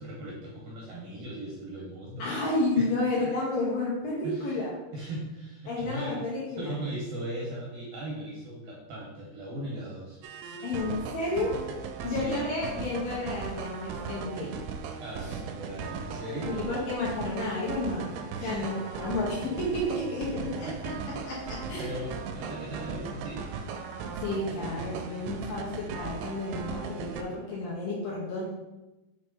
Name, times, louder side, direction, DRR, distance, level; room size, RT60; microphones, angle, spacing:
voice 1, 0.0-2.3 2.8-2.9 4.2-4.6 4.9-10.2 12.1-12.4 15.0-16.6 18.4-18.7 20.4-21.0 21.8-23.6, right 1 dB, 70° right, -4 dB, 2.3 m, -38 dB
voice 2, 2.2-4.7 5.7-6.8 10.6-11.6 12.0-14.6 15.3-15.4 16.5-20.9 21.2-22.0 24.2-28.4, left 2 dB, 70° left, -5 dB, 2.4 m, -31 dB
sound 1, 10.2-27.2, right 5 dB, 90° right, 2.9 m, -38 dB
6.8 x 3.0 x 5.3 m, 1.0 s
omnidirectional pair, 5.1 m